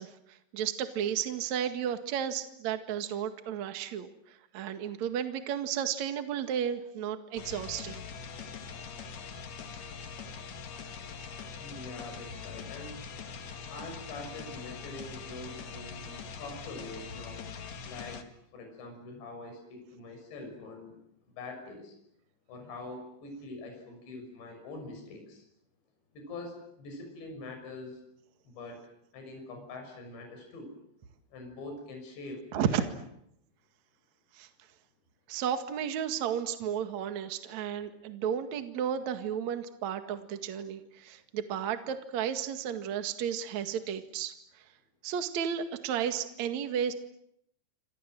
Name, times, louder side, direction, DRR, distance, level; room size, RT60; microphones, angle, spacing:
voice 1, 0.0-8.0 32.5-32.9 34.3-34.5 35.3-44.3 45.0-46.9, right 9 dB, 50° right, 8 dB, 2.4 m, -33 dB
sound 1, 7.4-18.2, left 6 dB, 50° left, 2.4 m, -43 dB
voice 2, 11.6-13.0 13.6-17.4 17.9-18.2 18.5-21.0 21.4-22.0 22.5-25.4 26.1-28.0 28.4-28.8 29.1-30.7 31.3-32.9, left 2 dB, 65° left, 3 dB, 8.4 m, -44 dB
27.5 x 27.5 x 7.7 m, 0.75 s
omnidirectional pair, 5.5 m